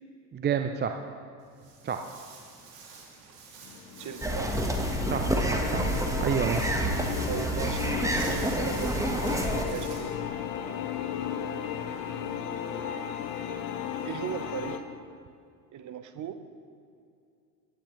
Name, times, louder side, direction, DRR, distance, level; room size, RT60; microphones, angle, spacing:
voice 1, 0.3-1.0 1.8-2.1 5.1-5.9 6.2-6.6, right 7 dB, 20° right, 6 dB, 0.6 m, -29 dB
Walk footsteps, 1.4-10.1, right 4 dB, 65° right, 2.9 m, -48 dB
sound 1, 3.6-14.8, left 9 dB, 45° left, 1.1 m, -35 dB
voice 2, 4.0-4.6 7.3-9.2 9.5-10.4 12.7-13.3 14.0-14.9 15.7-16.4, right 8 dB, 40° right, 10 dB, 1.0 m, -38 dB
sound 2, 4.2-9.7, right 1 dB, 5° right, 1.4 m, -28 dB
18.0 x 10.0 x 3.2 m, 2.4 s
hypercardioid pair, 70°, 48 cm